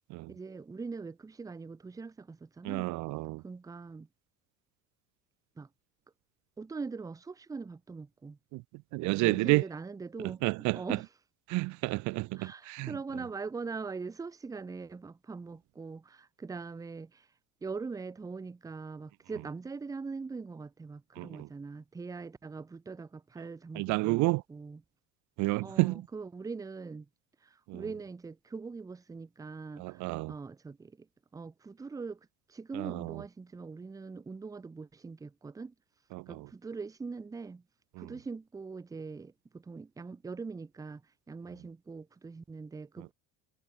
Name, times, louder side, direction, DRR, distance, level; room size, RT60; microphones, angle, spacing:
voice 1, 0.3-2.9 3.4-4.1 5.6-5.7 6.6-8.4 9.2-10.4 10.7-11.0 12.4-17.3 17.6-24.2 24.5-24.8 25.6-27.1 27.4-31.1 31.3-32.2 32.5-35.7 36.3-37.6 38.0-41.0 41.3-43.1, right 4 dB, 10° right, 0.6 m, -42 dB
voice 2, 2.6-3.4 8.5-8.6 8.9-9.6 10.4-11.0 11.5-13.0 21.2-21.5 23.7-24.4 25.4-26.0 27.7-27.8 29.8-30.3 32.7-33.2 36.1-36.5 38.0-38.1 43.0-43.1, right 23 dB, 55° right, 0.5 m, -30 dB
supercardioid pair, 120°, 35 cm